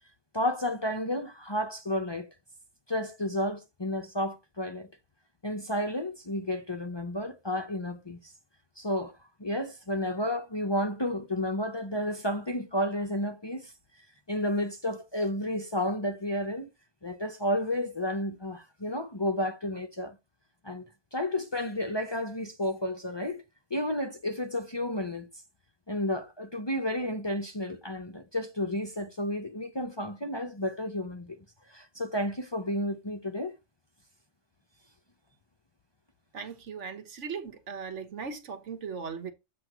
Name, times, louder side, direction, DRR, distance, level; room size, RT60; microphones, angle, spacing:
voice 1, 0.3-2.3 2.9-4.9 5.4-8.3 8.8-9.1 9.4-13.7 14.3-16.7 17.0-20.2 20.6-20.9 21.1-23.4 23.7-25.3 25.9-33.5, left 1 dB, 25° left, 0.6 m, -31 dB
voice 2, 36.3-39.3, right 6 dB, 80° right, 1.4 m, -38 dB
7.8 x 3.1 x 6.0 m
omnidirectional pair, 1.2 m